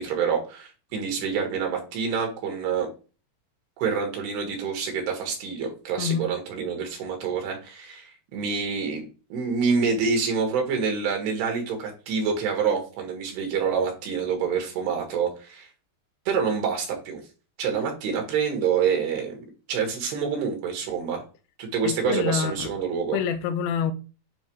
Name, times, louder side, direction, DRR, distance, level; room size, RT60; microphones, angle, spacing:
voice 1, 0.0-2.9 3.8-9.1 9.3-15.7 16.3-17.2 17.6-21.2 21.6-23.2, right 6 dB, 85° right, 3.8 m, -27 dB
voice 2, 21.8-22.7 23.1-23.9, left 7 dB, 85° left, 2.4 m, -26 dB
9.3 x 3.5 x 3.1 m
omnidirectional pair, 4.5 m